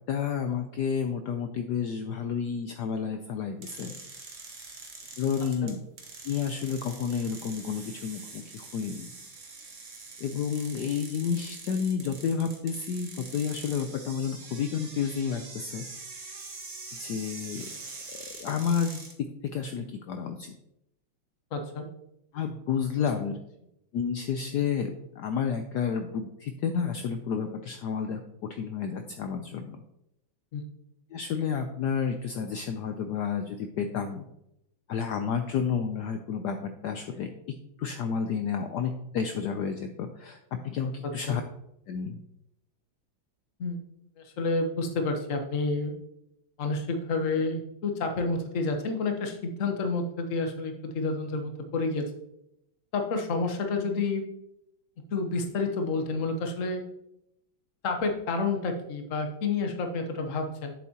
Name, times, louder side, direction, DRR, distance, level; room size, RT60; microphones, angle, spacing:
voice 1, 0.1-3.9 5.2-5.8 6.2-9.1 10.2-15.9 17.0-17.7 18.4-19.1 19.5-20.5 22.3-23.3 23.9-24.9 25.2-28.2 28.5-29.8 31.1-34.2 34.9-37.3 37.8-40.4 40.6-41.4 41.9-42.2, left 7 dB, 75° left, 7 dB, 0.9 m, -30 dB
sound 1, 3.6-19.1, right 4 dB, 45° right, 1.3 m, -44 dB
voice 2, 21.5-21.9 23.0-23.1 30.5-30.6 41.3-41.4 43.6-43.8 44.2-45.9 46.6-52.0 52.9-54.2 55.1-56.8 57.8-60.7, left 3 dB, 45° left, 4 dB, 1.1 m, -29 dB
8.2 x 7.3 x 2.8 m, 0.82 s
omnidirectional pair, 2.3 m